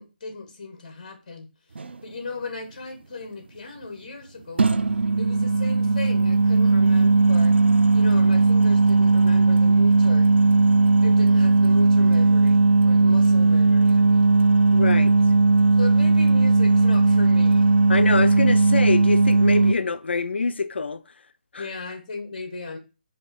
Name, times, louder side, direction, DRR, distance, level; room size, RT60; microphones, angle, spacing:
voice 1, 0.0-1.5 2.0-4.7 5.2-7.6 7.9-10.3 10.8-14.3 15.8-17.7 21.6-22.8, left 3 dB, 40° left, 1.1 m, -37 dB
sound 1, 1.8-1.9 4.6-19.7, right 3 dB, 85° right, 0.4 m, -17 dB
voice 2, 14.7-15.2 17.9-21.0 21.5-21.7, left 4 dB, 80° left, 0.3 m, -25 dB
4.2 x 2.7 x 3.5 m
hypercardioid pair, 170°, 6 cm